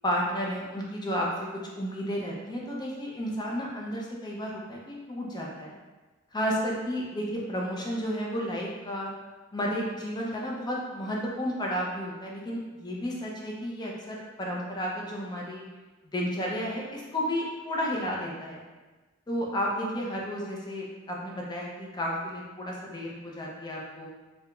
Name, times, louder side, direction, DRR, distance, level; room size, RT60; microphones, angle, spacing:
voice 1, 0.0-5.7 6.3-9.1 9.5-15.6 16.1-18.6 19.3-24.1, equal, 20° left, -3 dB, 0.5 m, -32 dB
3.2 x 2.4 x 2.9 m, 1.2 s
head